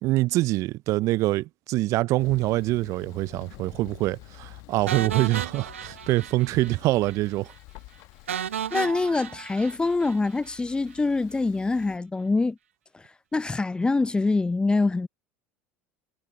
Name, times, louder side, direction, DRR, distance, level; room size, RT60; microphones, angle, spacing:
voice 1, 0.0-7.5, right 18 dB, 50° right, 0.5 m, -25 dB
Thunder, 2.2-12.0, left 23 dB, 55° left, 1.1 m, -49 dB
sound 1, 4.9-6.8 7.0-7.2 7.5-7.6 8.3-10.6, right 9 dB, 80° right, 0.9 m, -34 dB
voice 2, 8.7-12.6 13.3-15.1, left 3 dB, 15° left, 0.6 m, -24 dB
figure-of-eight pair, 70°, 7 cm